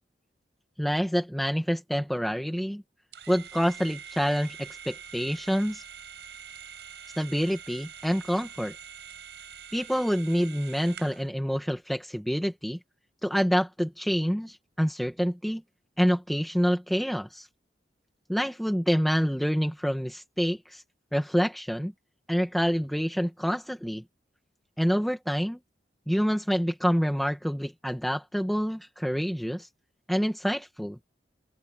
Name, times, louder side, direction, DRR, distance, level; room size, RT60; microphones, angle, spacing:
voice 1, 0.8-2.8 3.3-5.8 7.2-8.7 9.7-12.8 13.2-15.6 16.0-17.5 18.3-20.8 21.1-21.9 22.3-24.0 24.8-25.6 26.1-29.7 30.1-31.0, equal, ahead, 1.7 m, -27 dB
sound 1, 3.1-11.3, right 8 dB, 80° right, 5.6 m, -45 dB
open air
head